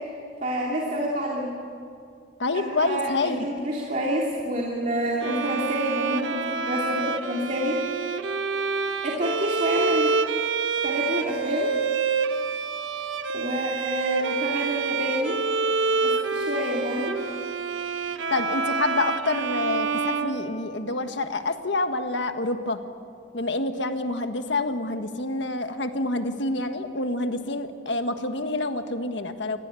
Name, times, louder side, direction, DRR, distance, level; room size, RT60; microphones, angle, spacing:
voice 1, 0.4-1.5 2.5-7.8 9.0-10.1 10.8-11.7 13.3-15.4 16.0-17.2, equal, 40° right, -3 dB, 2.9 m, -28 dB
voice 2, 2.4-3.5 18.3-22.8 23.3-29.6, left 2 dB, 65° left, 7 dB, 1.6 m, -27 dB
Bowed string instrument, 5.2-21.1, right 4 dB, 85° right, 1.2 m, -27 dB
28.0 x 21.0 x 8.4 m, 2.4 s
head